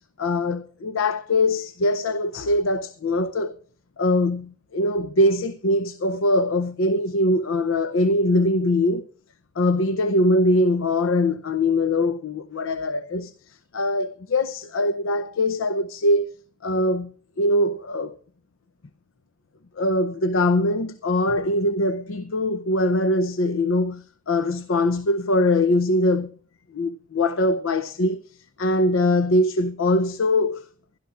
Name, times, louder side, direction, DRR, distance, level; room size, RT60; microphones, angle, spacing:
voice 1, 0.0-3.5 4.0-9.1 9.6-16.3 16.6-18.2 19.8-26.4 26.7-30.7, left 1 dB, 80° left, 0.6 m, -22 dB
23.5 x 11.5 x 2.5 m
head